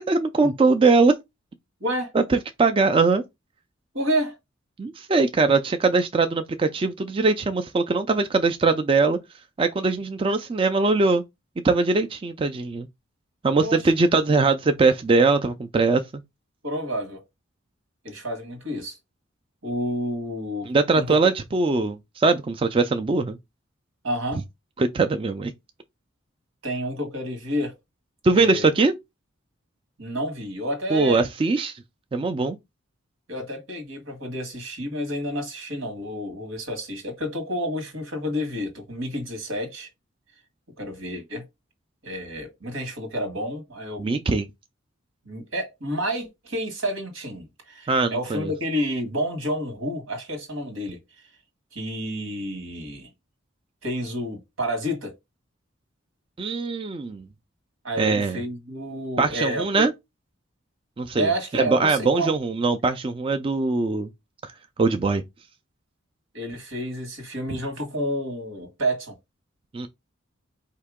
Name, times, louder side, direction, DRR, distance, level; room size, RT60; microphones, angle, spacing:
voice 1, 0.1-1.1 2.1-3.2 4.8-9.2 9.6-11.2 11.6-12.9 13.4-16.0 20.6-23.4 24.8-25.5 28.2-28.9 30.9-31.8 32.1-32.6 44.0-44.5 47.9-48.5 56.4-57.3 58.0-58.4 59.2-59.9 61.0-64.1 64.4-64.5 64.8-65.2 69.7-69.9, right 3 dB, 25° right, 0.3 m, -21 dB
voice 2, 1.8-2.1 3.9-4.4 13.5-13.8 16.6-17.2 18.0-19.0 19.6-20.7 21.0-21.3 24.0-24.4 26.6-27.7 28.3-28.7 30.0-31.2 33.3-39.9 40.8-41.4 42.0-44.0 45.2-51.0 51.7-53.1 53.8-55.2 57.8-59.9 61.2-62.3 66.3-69.1, equal, 85° right, 1.6 m, -29 dB
4.4 x 2.8 x 3.5 m
head